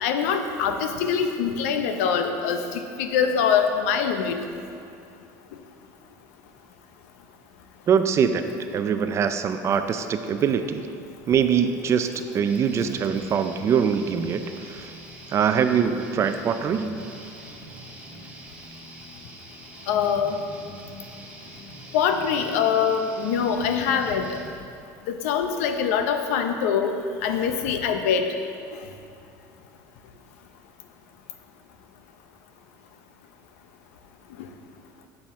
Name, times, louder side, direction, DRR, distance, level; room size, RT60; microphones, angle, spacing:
voice 1, 0.0-4.4 19.9-20.4 21.9-24.4 25.1-26.9 27.2-28.3, left 7 dB, 85° left, 6 dB, 0.6 m, -24 dB
voice 2, 7.9-8.4 8.7-10.9 11.3-14.9 15.3-17.0, right 7 dB, 40° right, 9 dB, 0.5 m, -23 dB
sound 1, 12.5-24.5, equal, 20° right, 1.3 m, -43 dB
7.6 x 7.4 x 3.6 m, 2.5 s
supercardioid pair, 110°, 8 cm